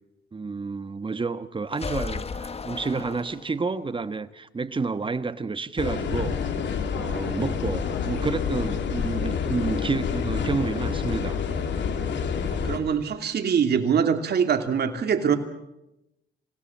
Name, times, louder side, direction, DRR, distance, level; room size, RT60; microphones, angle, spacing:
voice 1, 0.3-6.4 6.9-11.4, right 4 dB, 25° right, 1.2 m, -30 dB
sound 1, 1.7-3.8, left 4 dB, 30° left, 1.2 m, -34 dB
sound 2, 5.8-12.8, left 6 dB, 65° left, 2.9 m, -28 dB
voice 2, 12.5-15.4, right 7 dB, 55° right, 2.7 m, -23 dB
27.0 x 17.0 x 7.3 m
cardioid pair, 90°, 20 cm